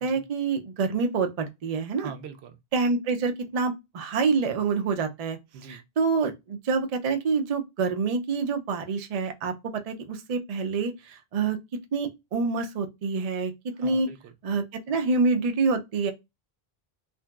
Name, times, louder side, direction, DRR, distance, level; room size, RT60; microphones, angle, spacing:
voice 1, 0.0-2.1 2.7-5.4 5.7-14.1 14.4-16.1, right 4 dB, 50° right, 0.4 m, -27 dB
voice 2, 2.0-2.6 5.5-5.8 13.8-14.3, right 6 dB, 80° right, 0.8 m, -42 dB
2.9 x 2.6 x 2.2 m
omnidirectional pair, 1.1 m